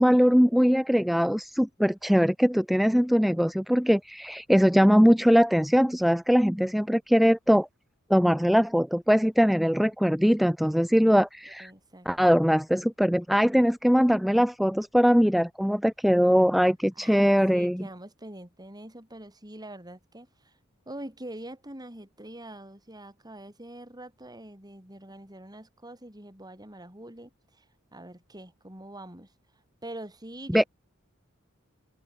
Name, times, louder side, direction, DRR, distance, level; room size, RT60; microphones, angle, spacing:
voice 1, 0.0-7.7 8.1-11.7 12.1-17.9 30.5-30.6, equal, ahead, 0.3 m, -21 dB
voice 2, 11.6-12.1 16.9-20.5 20.9-27.6 27.9-29.3 29.8-30.7, right 1 dB, 20° right, 7.7 m, -44 dB
head